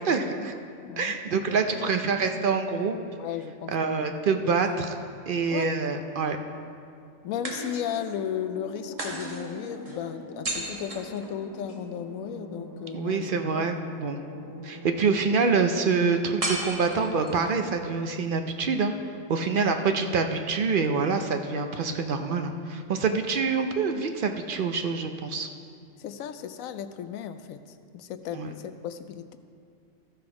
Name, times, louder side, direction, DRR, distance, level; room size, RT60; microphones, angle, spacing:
voice 1, 0.0-0.5 1.0-3.0 3.7-4.9 5.3-6.4 12.9-14.2 14.6-18.9 19.3-25.5 28.3-28.5, right 4 dB, 55° right, 6 dB, 0.6 m, -26 dB
voice 2, 0.8-1.2 1.5-2.6 3.2-4.1 4.4-4.8 5.5-5.7 7.2-13.2 13.5-13.7 22.9-23.2 26.0-27.6 27.9-29.4, left 9 dB, 90° left, 11 dB, 1.0 m, -35 dB
sound 1, 4.3-5.4 7.4-8.2 9.0-11.8 16.4-17.5, right 1 dB, 30° right, 1.2 m, -36 dB
sound 2, 7.3-17.7, equal, 15° left, 1.1 m, -43 dB
14.0 x 6.0 x 4.8 m, 2.3 s
omnidirectional pair, 1.4 m